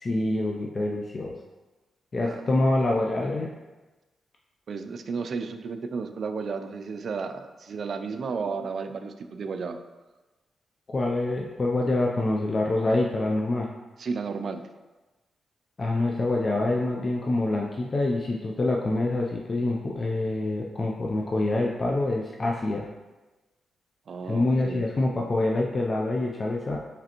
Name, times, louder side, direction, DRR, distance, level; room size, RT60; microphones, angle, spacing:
voice 1, 0.0-1.4 2.1-3.5 10.9-13.7 15.8-22.9 24.3-26.8, left 2 dB, 35° left, -1 dB, 0.4 m, -26 dB
voice 2, 2.2-2.7 4.7-9.8 14.0-14.7 24.1-24.9, right 5 dB, 60° right, 8 dB, 0.3 m, -33 dB
5.0 x 3.2 x 2.9 m, 1.2 s
cardioid pair, 100°, 0 cm